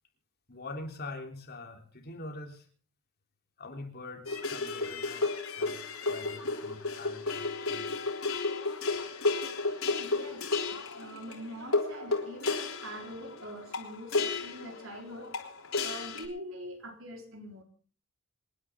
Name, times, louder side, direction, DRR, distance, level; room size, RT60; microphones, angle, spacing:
voice 1, 0.5-2.7 3.6-5.3 5.6-8.0, left 2 dB, 50° left, 3 dB, 3.6 m, -44 dB
sound 1, 4.3-16.3, left 3 dB, 85° left, 3.5 m, -33 dB
voice 2, 9.8-15.4 15.8-17.6, equal, 65° right, 3 dB, 4.2 m, -44 dB
27.0 x 10.5 x 3.7 m, 0.41 s
head